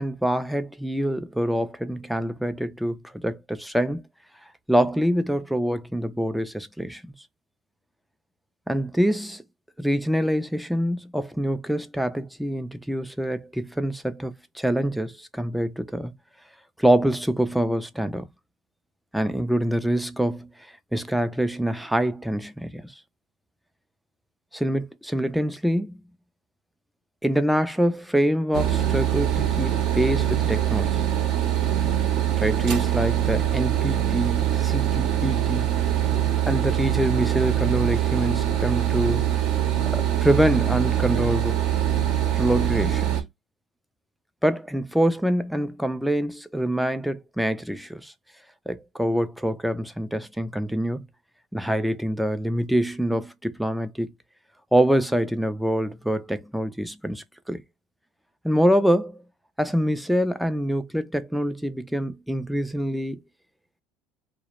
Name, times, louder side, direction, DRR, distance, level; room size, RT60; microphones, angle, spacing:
voice 1, 0.0-4.0 4.7-7.0 8.7-9.4 9.8-16.1 16.8-18.3 19.1-20.5 20.9-22.9 24.5-26.0 27.2-31.0 32.4-35.8 36.5-39.3 39.9-41.6 42.3-43.2 44.4-48.1 48.7-51.0 51.5-54.1 54.7-57.6 58.4-59.2 59.6-63.2, right 1 dB, ahead, 0.3 m, -25 dB
sound 1, 28.5-43.2, right 11 dB, 60° right, 0.7 m, -23 dB
2.2 x 2.0 x 2.8 m
cardioid pair, 130°, 0 cm